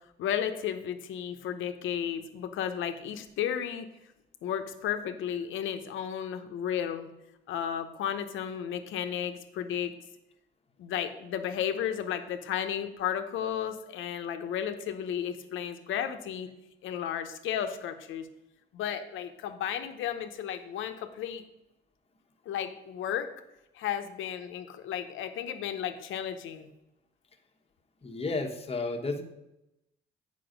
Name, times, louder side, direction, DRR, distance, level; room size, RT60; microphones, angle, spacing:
voice 1, 0.2-3.9 4.4-7.1 7.5-9.9 10.8-16.5 16.8-18.3 18.7-21.4 22.5-23.3 23.7-26.7, left 9 dB, 80° left, 8 dB, 0.8 m, -33 dB
voice 2, 28.0-29.2, left 3 dB, 30° left, 3 dB, 1.1 m, -32 dB
7.8 x 5.4 x 5.1 m, 0.89 s
cardioid pair, 90°, 20 cm